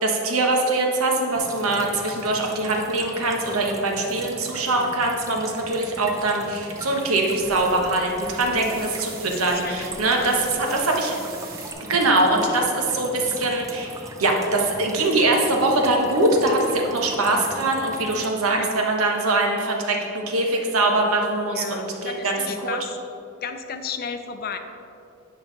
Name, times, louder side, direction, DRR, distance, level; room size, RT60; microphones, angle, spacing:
voice 1, 0.0-11.1 11.9-22.8, right 2 dB, 90° right, 1 dB, 1.2 m, -22 dB
sound 1, 1.3-18.3, right 2 dB, 15° right, 0.5 m, -39 dB
sound 2, 6.1-11.7, right 3 dB, 45° right, 1.1 m, -43 dB
voice 2, 9.3-9.7 10.2-10.3 18.2-18.8 21.5-23.0 23.4-24.6, left 5 dB, 45° left, 7 dB, 0.5 m, -34 dB
9.5 x 5.6 x 4.0 m, 2.6 s
head